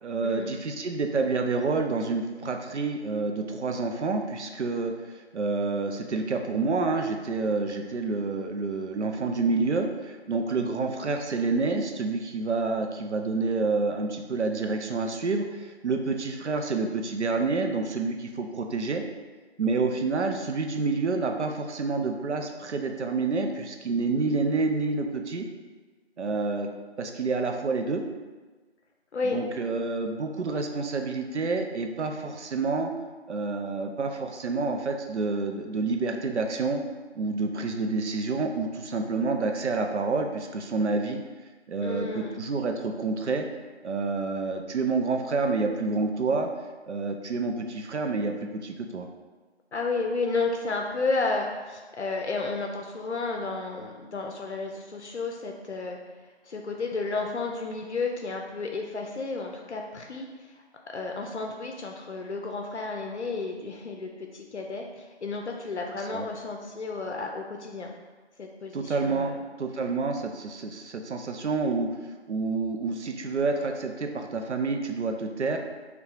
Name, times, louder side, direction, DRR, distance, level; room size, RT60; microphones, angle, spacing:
voice 1, 0.0-19.0 19.6-25.5 26.2-26.7 27.0-28.0 29.2-32.9 33.3-36.8 37.1-41.2 41.7-43.5 43.8-46.5 46.9-49.1 66.1-66.3 68.7-75.6, right 3 dB, 85° right, 4 dB, 0.5 m, -28 dB
voice 2, 41.8-42.4 49.7-56.0 56.4-60.5 60.9-67.9 68.4-69.4, left 3 dB, 80° left, 2 dB, 0.5 m, -32 dB
3.8 x 2.3 x 2.4 m, 1.3 s
figure-of-eight pair, 175°, 34 cm